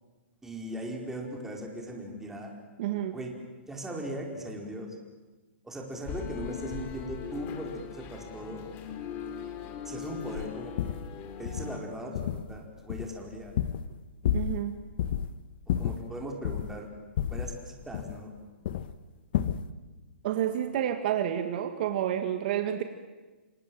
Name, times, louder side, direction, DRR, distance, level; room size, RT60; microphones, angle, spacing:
voice 1, 0.4-2.5 3.1-3.3 3.7-4.9 5.6-8.7 9.8-11.0 11.4-13.5 15.8-16.9 17.3-17.5 17.9-18.3, right 1 dB, 5° right, 0 dB, 4.7 m, -39 dB
voice 2, 2.8-3.2 14.3-14.8 20.2-22.8, right 10 dB, 50° right, 7 dB, 2.0 m, -29 dB
sound 1, 6.1-11.8, left 7 dB, 30° left, 2.9 m, -39 dB
sound 2, 10.3-10.5 10.8-11.1 11.5-11.7 12.1-12.6 12.9-14.0 14.2-14.7 15.0-15.3 15.7-16.8 17.2-18.4 18.7-18.9 19.3-19.7, left 10 dB, 50° left, 1.3 m, -31 dB
28.5 x 26.0 x 7.8 m, 1.2 s
hypercardioid pair, 140°, 7 cm